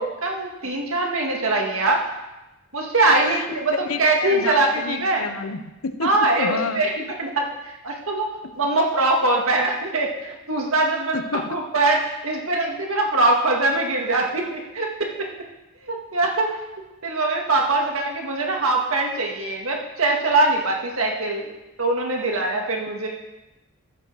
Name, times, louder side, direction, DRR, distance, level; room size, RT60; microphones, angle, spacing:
voice 1, 0.0-2.0 2.7-5.3 6.0-6.9 7.2-8.3 8.6-11.2 11.5-15.3 15.8-16.5 17.0-21.5 21.8-23.1, right 2 dB, 70° right, 0 dB, 2.0 m, -22 dB
voice 2, 3.8-6.8 8.4-8.5 11.1-11.6, left 4 dB, 80° left, 10 dB, 0.8 m, -29 dB
13.5 x 5.5 x 6.2 m, 0.99 s
head